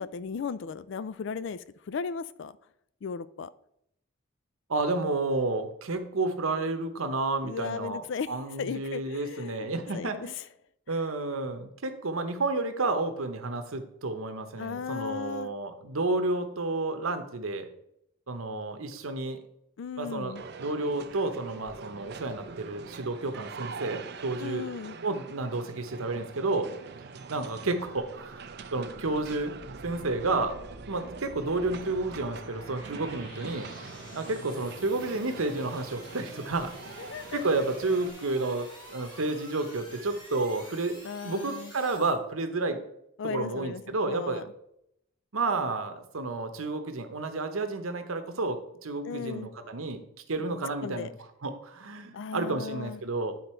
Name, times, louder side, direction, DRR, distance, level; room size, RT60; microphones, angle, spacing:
voice 1, 0.0-2.5 3.0-3.5 7.4-8.3 8.6-9.7 9.9-10.3 10.9-11.0 14.6-15.5 19.8-20.4 24.4-25.0 37.0-37.6 41.0-41.7 43.2-44.5 49.0-49.5 50.4-50.5 50.8-51.1 52.1-53.0, left 6 dB, 60° left, 16 dB, 0.4 m, -36 dB
voice 2, 4.7-10.3 10.9-17.7 18.3-19.4 20.0-24.6 25.0-26.7 27.3-28.4 28.7-29.6 29.8-30.6 30.9-33.7 34.1-36.7 37.3-41.0 41.2-42.8 43.2-44.4 45.3-51.1 51.4-53.3, right 3 dB, 90° right, 8 dB, 0.9 m, -31 dB
sound 1, 20.3-38.1, right 4 dB, 50° right, 0.5 m, -44 dB
sound 2, 28.0-42.2, equal, 20° left, 2.8 m, -48 dB
10.0 x 4.0 x 4.4 m, 0.77 s
head